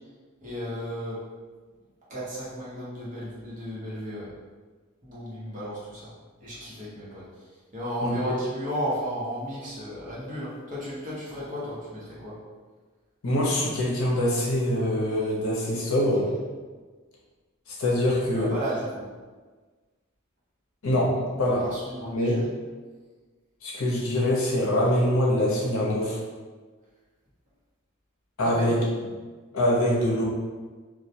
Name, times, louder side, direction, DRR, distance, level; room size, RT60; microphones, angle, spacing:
voice 1, 0.4-1.2 2.1-4.3 5.0-6.1 6.4-7.3 7.7-12.4 18.4-19.0 21.5-22.4 28.4-28.8, equal, 35° right, -9 dB, 0.8 m, -34 dB
voice 2, 8.0-8.4 13.2-16.3 17.7-18.5 20.8-21.6 22.1-22.4 23.6-26.2 28.4-28.8 29.5-30.3, left 1 dB, 80° left, -4 dB, 0.6 m, -24 dB
2.2 x 2.1 x 2.7 m, 1.4 s
head